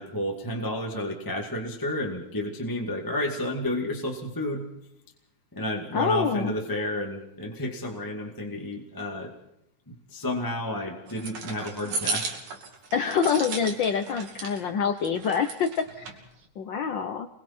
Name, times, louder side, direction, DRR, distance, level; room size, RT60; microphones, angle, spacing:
voice 1, 0.0-4.7 5.5-9.3 9.9-12.3, left 1 dB, 10° left, 1 dB, 1.9 m, -31 dB
voice 2, 5.9-6.5 12.9-16.1 16.6-17.3, left 6 dB, 80° left, 7 dB, 1.0 m, -26 dB
sound 1, 11.1-14.6 15.0-16.2, right 4 dB, 70° right, 3.9 m, -35 dB
28.0 x 21.5 x 4.4 m, 0.79 s
omnidirectional pair, 3.4 m